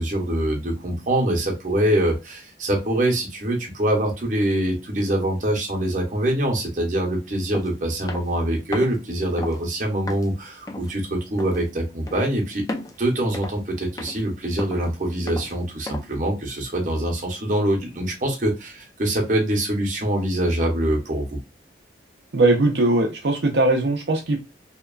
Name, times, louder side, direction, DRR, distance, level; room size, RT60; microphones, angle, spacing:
voice 1, 0.0-12.7 13.0-21.2, right 1 dB, 45° right, 0 dB, 0.8 m, -24 dB
sound 1, 7.5-7.7 8.1-8.4 8.7-9.0 9.4-9.6 10.1-10.3 10.7-10.9 11.4-11.6 12.1-12.3 12.7-13.0 13.3-13.7 14.0-14.3 14.6-14.9 15.3-15.5 15.9-16.1, left 1 dB, 20° left, 0.3 m, -34 dB
voice 2, 22.3-24.4, right 2 dB, 80° right, 2 dB, 0.5 m, -19 dB
2.8 x 2.2 x 2.3 m, 0.27 s
head